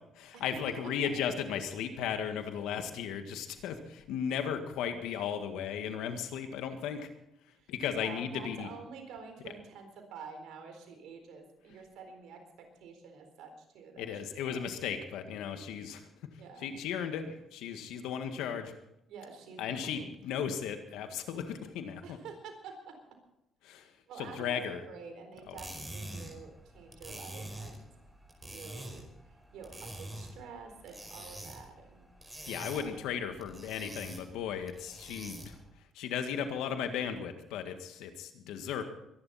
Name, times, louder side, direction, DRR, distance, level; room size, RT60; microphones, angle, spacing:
voice 1, 0.2-7.1 7.7-8.7 14.0-16.1 16.6-18.7 19.6-22.2 23.6-23.9 24.2-24.8 25.5-25.6 32.5-35.6 36.0-38.8, left 8 dB, 85° left, 7 dB, 1.8 m, -36 dB
voice 2, 8.0-14.7 16.4-16.7 19.1-20.2 22.0-23.0 24.1-27.9 28.4-33.0, right 5 dB, 80° right, 5 dB, 4.1 m, -49 dB
sound 1, 25.4-35.7, right 1 dB, 15° right, 5.0 m, -46 dB
23.5 x 11.5 x 4.3 m, 0.84 s
supercardioid pair, 70°, 0 cm